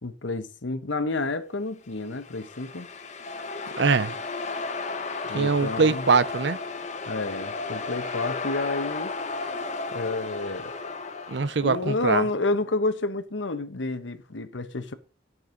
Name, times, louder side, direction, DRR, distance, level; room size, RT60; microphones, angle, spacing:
voice 1, 0.0-2.9 5.3-6.0 7.1-9.1 9.9-10.7 11.6-14.9, left 3 dB, 90° left, 1.1 m, -29 dB
sound 1, 2.0-11.8, left 3 dB, 40° left, 1.1 m, -34 dB
voice 2, 3.8-4.2 5.3-6.6 11.3-12.3, right 4 dB, 65° right, 0.6 m, -23 dB
12.0 x 6.3 x 5.2 m
head